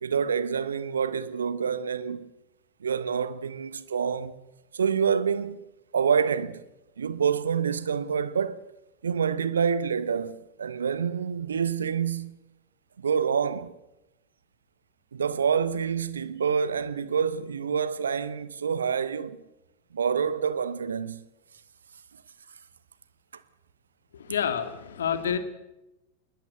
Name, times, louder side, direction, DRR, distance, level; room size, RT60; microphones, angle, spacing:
voice 1, 0.0-2.3 2.8-4.3 4.7-5.6 5.9-6.6 7.0-8.6 9.0-12.4 13.0-13.7 15.1-19.4 19.9-21.2, right 7 dB, 70° right, 1.1 m, -27 dB
voice 2, 24.1-25.4, left 8 dB, 65° left, 2.5 m, -28 dB
20.5 x 20.0 x 8.0 m
figure-of-eight pair, 90°, 0 cm